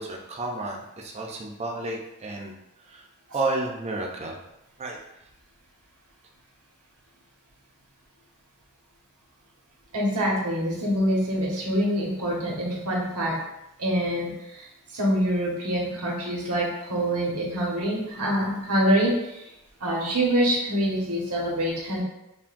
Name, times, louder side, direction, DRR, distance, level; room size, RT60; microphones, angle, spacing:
voice 1, 0.0-2.5 2.9-3.0 3.3-4.4 4.8-5.0, right 2 dB, 30° right, 0 dB, 0.5 m, -31 dB
voice 2, 9.9-13.3 13.8-14.7 14.9-19.4 19.8-22.0, equal, 90° right, -4 dB, 1.2 m, -25 dB
5.7 x 2.2 x 2.6 m, 0.89 s
head